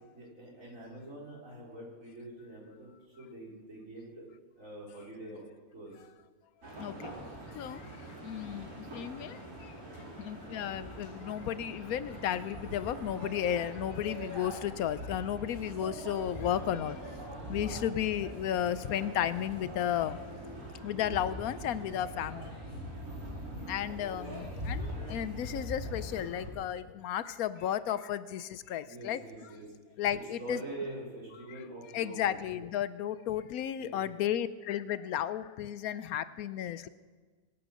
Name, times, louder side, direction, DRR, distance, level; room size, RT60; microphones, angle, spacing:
voice 1, 0.1-4.3 4.6-5.4 5.7-5.9 7.3-7.6 10.4-10.6 13.5-13.8 17.4-17.7 21.1-21.3 23.9-24.2 28.8-29.7 30.1-32.7 33.8-34.0, right 1 dB, 60° right, -3 dB, 4.5 m, -45 dB
sound 1, 6.6-26.5, equal, 85° right, 5.2 m, -42 dB
voice 2, 8.2-8.7 8.9-9.3 10.2-17.0 17.5-20.2 20.8-22.4 23.7-28.4 28.7-29.2 30.0-30.6 31.9-36.9, left 10 dB, 75° left, 15 dB, 1.1 m, -33 dB
23.5 x 9.1 x 6.3 m, 1.4 s
omnidirectional pair, 1.5 m